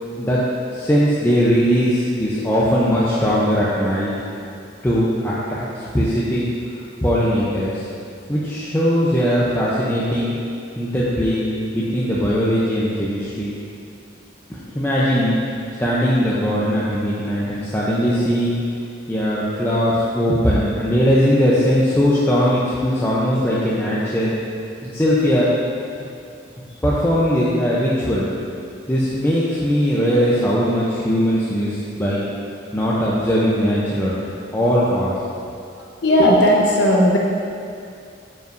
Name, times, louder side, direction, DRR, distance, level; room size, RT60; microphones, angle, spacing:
voice 1, 0.7-4.1 4.8-6.5 7.0-7.9 8.3-10.4 10.8-11.4 11.7-13.5 14.8-15.4 15.8-18.6 19.1-24.3 24.8-25.5 26.8-28.3 28.9-32.3 32.7-34.1 34.5-35.1, equal, 10° left, -8 dB, 0.6 m, -19 dB
voice 2, 36.0-37.2, equal, 65° left, -3 dB, 1.0 m, -15 dB
9.0 x 5.5 x 2.6 m, 2.4 s
head